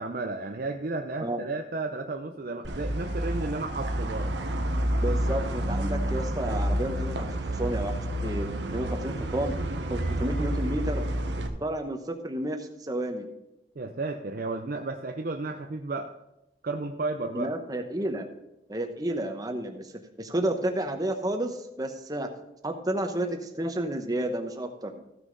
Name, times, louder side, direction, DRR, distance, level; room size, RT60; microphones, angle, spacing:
voice 1, 0.0-4.3 13.8-16.1 16.6-17.5, right 3 dB, 50° right, 4 dB, 0.6 m, -33 dB
sound 1, 2.6-11.5, right 1 dB, 85° right, 1.1 m, -29 dB
voice 2, 5.0-9.6 9.9-11.0 11.6-13.3 17.3-18.3 18.7-19.9 20.2-22.3 22.6-24.9, right 1 dB, 20° right, 5 dB, 1.0 m, -31 dB
15.0 x 6.3 x 4.0 m, 0.93 s
head